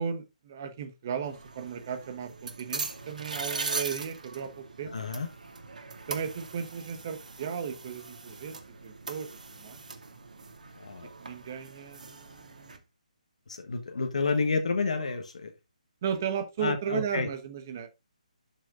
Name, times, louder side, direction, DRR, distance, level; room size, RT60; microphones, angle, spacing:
voice 1, 0.0-5.0 6.1-9.8 11.2-12.8 16.0-17.9, right 7 dB, 20° right, 1.0 m, -35 dB
sound 1, 1.2-12.8, right 4 dB, 70° right, 2.3 m, -40 dB
voice 2, 4.9-5.3 10.8-11.1 13.5-15.5 16.6-17.3, left 4 dB, 55° left, 1.3 m, -30 dB
12.0 x 6.0 x 2.5 m
hypercardioid pair, 180°, 4 cm